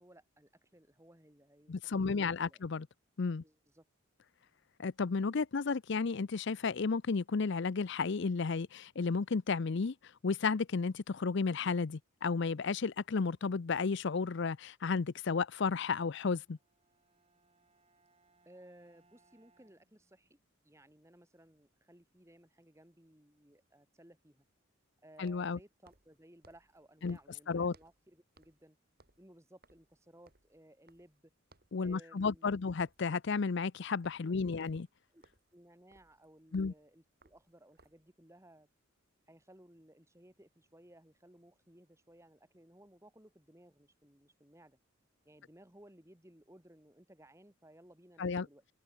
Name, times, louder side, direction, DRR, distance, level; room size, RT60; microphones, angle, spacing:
voice 1, 0.0-2.6 3.4-3.8 18.4-20.4 20.6-24.4 25.0-28.8 29.2-31.3 31.8-32.7 35.1-35.2 35.5-38.7 39.3-44.8 45.2-48.6, right 1 dB, 15° right, 3.1 m, -60 dB
voice 2, 1.7-2.9 3.2-3.4 4.8-16.6 25.2-25.6 27.0-27.2 27.5-27.7 31.7-34.9 36.5-36.7 48.2-48.5, left 4 dB, 55° left, 0.5 m, -33 dB
Bowed string instrument, 16.4-20.5, right 3 dB, 30° right, 7.6 m, -71 dB
sound 1, 21.8-21.9 25.2-28.1 28.4-28.7 28.9-31.2 31.5-31.8 32.2-32.4 32.7-38.1, right 2 dB, 45° right, 4.2 m, -67 dB
open air
head